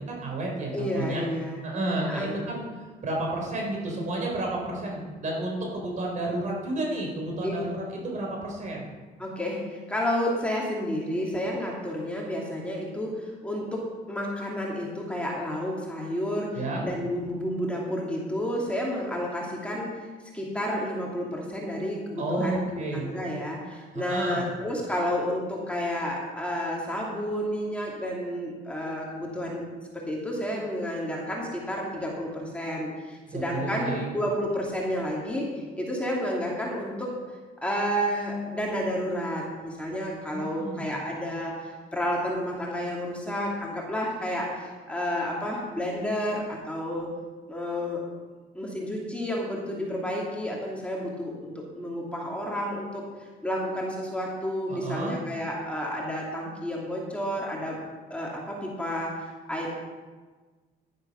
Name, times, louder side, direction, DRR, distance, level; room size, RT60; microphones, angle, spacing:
voice 1, 0.1-1.2 1.6-2.6 3.0-8.9 16.5-16.8 22.2-23.1 23.9-24.4 33.3-34.1 40.3-40.9 54.7-55.1, right 2 dB, 45° right, -1 dB, 4.5 m, -31 dB
voice 2, 0.7-1.6 2.1-2.3 7.4-7.5 9.2-20.1 20.3-29.6 29.9-47.1 47.5-48.0 48.5-57.8 58.1-59.7, equal, 5° left, -3 dB, 2.7 m, -31 dB
11.5 x 11.0 x 5.7 m, 1.4 s
cardioid pair, 110°, 17 cm